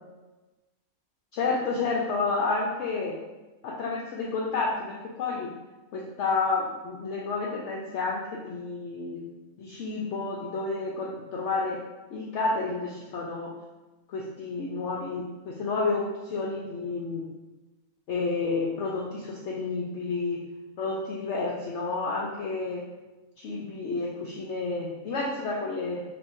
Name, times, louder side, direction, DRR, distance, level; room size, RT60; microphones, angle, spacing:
voice 1, 1.3-3.2 3.6-5.5 5.9-9.2 9.6-11.8 12.1-13.5 14.1-17.2 18.1-20.4 20.8-22.8 23.4-26.0, left 3 dB, 65° left, -2 dB, 0.8 m, -30 dB
3.5 x 2.9 x 4.3 m, 1.1 s
omnidirectional pair, 1.5 m